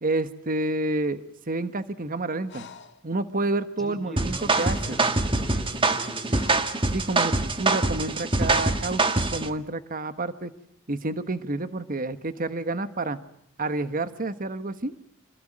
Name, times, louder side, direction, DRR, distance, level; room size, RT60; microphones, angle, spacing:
voice 1, 0.0-2.7 3.0-5.0 6.9-10.5 10.9-13.2 13.6-15.1, right 2 dB, 40° right, 11 dB, 1.2 m, -29 dB
Breathing, 2.5-3.0 4.2-4.3 4.5-5.2 5.9-6.9 8.5-9.0, left 4 dB, 55° left, 2.1 m, -44 dB
voice 2, 3.8-6.5, equal, ahead, 3 dB, 5.2 m, -41 dB
sound 1, 4.2-9.5, right 3 dB, 25° right, 1.6 m, -24 dB
27.0 x 21.0 x 9.0 m, 0.70 s
head